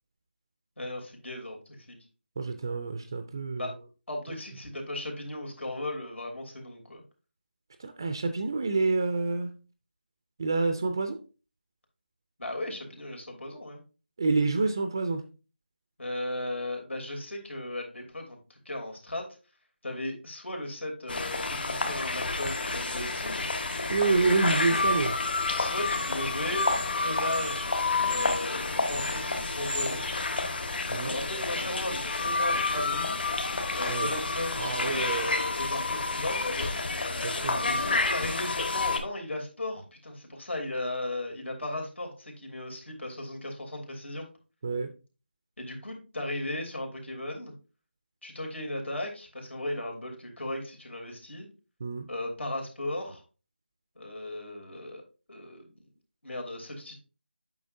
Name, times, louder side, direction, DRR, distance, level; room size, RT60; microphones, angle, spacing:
voice 1, 0.8-2.0 3.6-3.7 4.1-7.0 12.4-13.8 16.0-19.2 19.8-23.4 25.6-26.7 26.9-27.7 28.1-30.1 31.0-33.2 33.7-36.7 37.6-44.3 45.6-47.5 48.2-51.5 52.1-53.2 53.9-55.0 55.3-55.7 56.2-56.9, left 1 dB, 85° left, 2 dB, 3.1 m, -36 dB
voice 2, 2.4-3.7 7.8-9.5 10.4-11.2 14.2-15.2 23.9-25.2 30.9-31.1 33.9-34.1 34.6-35.3 37.2-37.6 44.6-44.9 51.8-52.0, right 3 dB, 20° right, 8 dB, 0.4 m, -28 dB
sound 1, 21.1-39.0, left 3 dB, 55° left, 1.6 m, -29 dB
8.5 x 6.0 x 2.6 m, 0.33 s
figure-of-eight pair, 170°, 6 cm